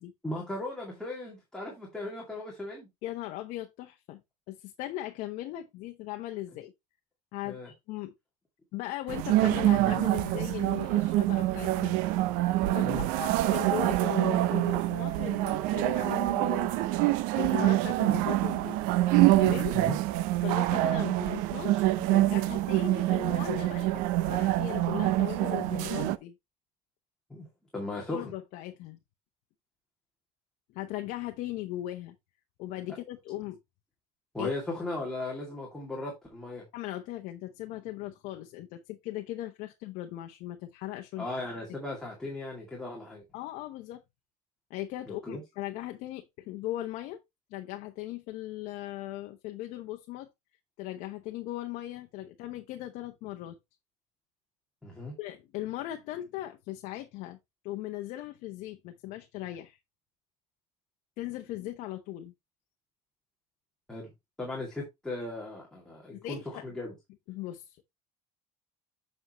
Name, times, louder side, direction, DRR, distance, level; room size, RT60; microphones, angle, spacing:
voice 1, 0.2-2.9 7.4-7.7 12.8-13.1 19.7-20.0 27.3-27.5 27.7-28.3 34.3-36.6 41.2-43.2 45.1-45.4 54.8-55.1 63.9-64.1 64.4-66.9, left 2 dB, 5° left, 2.3 m, -37 dB
voice 2, 3.0-4.2 4.5-6.7 7.3-8.1 8.7-12.0 12.6-17.1 17.3-18.8 19.4-19.7 20.4-26.3 28.1-29.0 30.7-32.2 32.6-33.6 34.4-34.5 36.7-41.3 43.3-44.0 44.7-47.2 47.5-50.3 50.8-53.6 55.2-57.4 57.6-59.8 61.2-62.3 66.1-66.6 67.3-67.8, left 14 dB, 65° left, 0.9 m, -38 dB
sound 1, 9.1-26.2, right 16 dB, 80° right, 0.6 m, -26 dB
7.8 x 6.4 x 3.0 m
cardioid pair, 165°, 14 cm